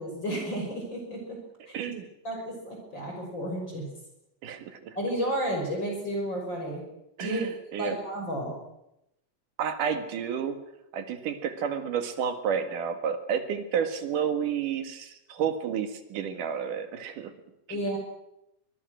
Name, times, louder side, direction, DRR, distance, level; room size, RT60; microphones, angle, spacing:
voice 1, 0.0-1.4 1.7-1.8 2.2-3.9 4.9-6.8 7.2-7.4 7.8-8.6 17.7-18.0, right 1 dB, 35° left, 1 dB, 6.3 m, -32 dB
voice 2, 1.7-2.1 4.4-5.0 7.2-8.0 9.6-10.6 10.9-17.3 17.7-17.8, right 7 dB, 80° right, 8 dB, 3.4 m, -31 dB
24.5 x 22.0 x 6.4 m, 0.85 s
omnidirectional pair, 3.7 m